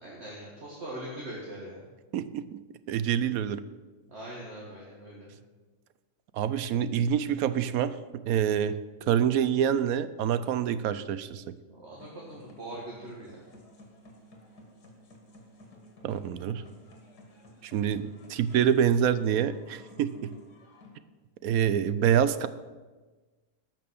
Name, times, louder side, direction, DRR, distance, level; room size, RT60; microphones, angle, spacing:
voice 1, 0.0-1.8 4.1-5.3 11.6-13.3, right 1 dB, 45° right, -4 dB, 2.1 m, -41 dB
voice 2, 2.1-2.6 2.9-3.6 6.3-8.8 9.1-11.4 16.0-16.6 17.6-20.3 21.4-22.5, right 9 dB, 70° right, 14 dB, 1.0 m, -26 dB
sound 1, 12.0-20.9, left 1 dB, 85° left, 2.5 m, -54 dB
12.5 x 6.0 x 7.0 m, 1.3 s
omnidirectional pair, 1.7 m